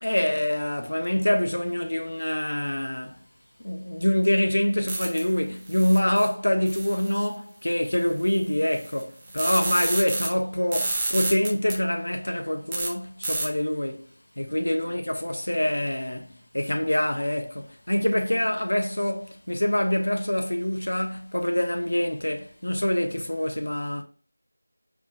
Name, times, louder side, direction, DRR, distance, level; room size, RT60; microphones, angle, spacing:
voice 1, 0.0-3.2 3.6-14.1 14.4-24.0, left 1 dB, 90° left, 0.8 m, -25 dB
sound 1, 4.9-5.3 5.7-6.3 6.7-7.2 8.3-8.4 8.7-10.3 10.7-11.7 12.7-12.9 13.2-13.5, right 2 dB, 10° right, 0.3 m, -29 dB
4.7 x 2.7 x 2.4 m
figure-of-eight pair, 180°, 0 cm